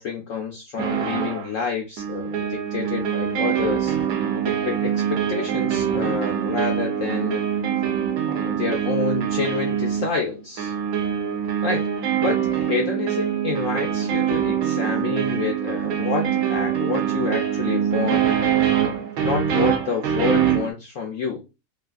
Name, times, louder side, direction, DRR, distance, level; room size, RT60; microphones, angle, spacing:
voice 1, 0.0-4.0 4.4-7.4 8.3-10.7 11.6-11.9 12.2-18.3 19.2-21.5, left 5 dB, 70° left, 0.7 m, -28 dB
sound 1, 0.8-1.5 2.0-20.7, right 9 dB, 65° right, 1.0 m, -24 dB
3.2 x 2.5 x 2.3 m
omnidirectional pair, 1.9 m